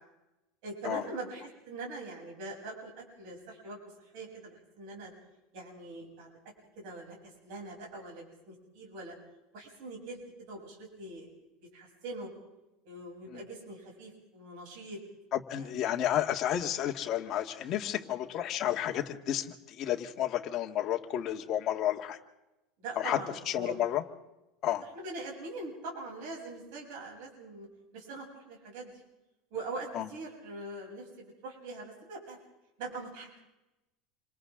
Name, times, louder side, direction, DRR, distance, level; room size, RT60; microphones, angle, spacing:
voice 1, 0.6-5.1 5.5-6.3 6.8-9.2 9.5-11.3 11.6-12.3 12.8-15.0 15.5-15.8 17.9-18.2 22.8-23.8 24.8-27.7 27.9-29.0 29.5-32.4 32.8-33.4, right 2 dB, 65° right, -1 dB, 8.0 m, -43 dB
voice 2, 15.3-22.2 23.0-23.2 23.5-24.0 24.6-24.8 29.9-30.1, left 11 dB, 35° left, 2 dB, 1.8 m, -31 dB
28.5 x 25.5 x 3.8 m, 0.96 s
supercardioid pair, 165°, 0 cm